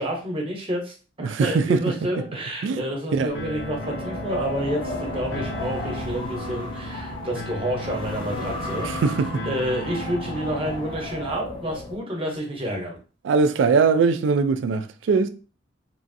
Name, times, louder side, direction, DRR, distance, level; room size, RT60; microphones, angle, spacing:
voice 1, 0.0-3.8 4.0-8.9 9.4-13.0, equal, 30° right, 0.8 m, -29 dB
voice 2, 1.2-2.2 2.6-2.8 3.2-3.3 8.8-9.4 13.2-15.3, right 5 dB, 75° right, 0.3 m, -21 dB
sound 1, 3.3-11.4, left 1 dB, 65° left, 0.6 m, -35 dB
Wind, 3.3-12.0, left 1 dB, 25° left, 0.6 m, -35 dB
3.0 x 2.5 x 2.6 m
head